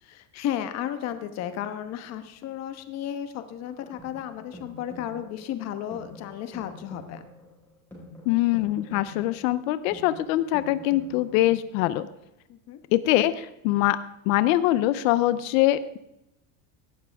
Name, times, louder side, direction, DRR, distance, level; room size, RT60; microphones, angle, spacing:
voice 1, 0.0-7.2 12.5-12.8, left 10 dB, 40° left, 10 dB, 1.1 m, -34 dB
sound 1, 3.7-11.6, left 1 dB, 5° left, 4.5 m, -47 dB
voice 2, 8.3-12.1 12.9-14.0 14.3-16.0, left 15 dB, 90° left, 14 dB, 0.7 m, -23 dB
17.0 x 12.0 x 3.5 m, 0.89 s
cardioid pair, 165°, 39 cm